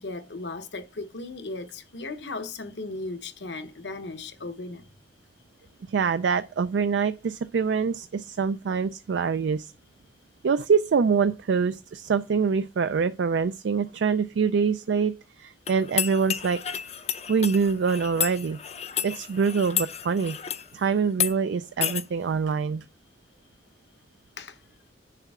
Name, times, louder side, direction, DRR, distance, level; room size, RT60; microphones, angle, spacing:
voice 1, 0.0-4.9 24.4-24.6, left 3 dB, 75° left, 1.0 m, -36 dB
voice 2, 5.9-9.7 10.4-16.6 17.3-18.6 19.0-20.3 20.7-22.8, right 5 dB, 80° right, 0.4 m, -25 dB
sound 1, 15.7-20.7 21.1-21.3 21.8-22.0, left 9 dB, 35° left, 0.5 m, -31 dB
8.3 x 6.7 x 3.6 m
head